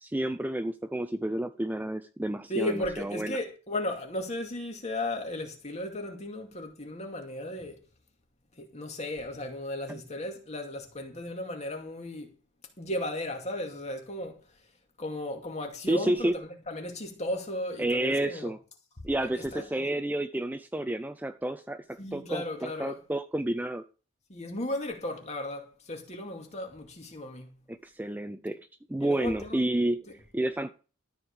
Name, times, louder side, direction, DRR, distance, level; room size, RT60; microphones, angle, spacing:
voice 1, 0.1-3.4 9.9-10.0 15.9-16.3 17.8-18.6 19.0-23.8 27.7-28.6 28.9-30.0 30.3-30.7, right 1 dB, 10° right, 0.5 m, -30 dB
voice 2, 2.5-7.8 8.6-12.3 12.8-14.4 15.0-18.5 19.0-19.1 19.3-19.9 22.0-23.0 24.3-27.6 29.0-29.6, left 1 dB, 35° left, 2.3 m, -35 dB
13.0 x 5.0 x 7.1 m
head